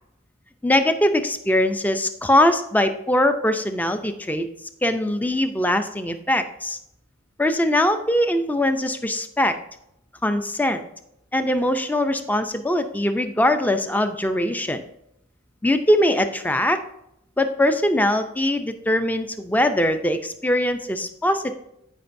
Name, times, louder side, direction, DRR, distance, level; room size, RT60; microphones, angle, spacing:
voice 1, 0.6-4.5 4.8-6.8 7.4-9.5 10.2-10.8 11.3-14.8 15.6-16.8 17.4-21.5, left 1 dB, 10° left, 8 dB, 0.4 m, -21 dB
15.5 x 5.2 x 2.6 m, 0.79 s
head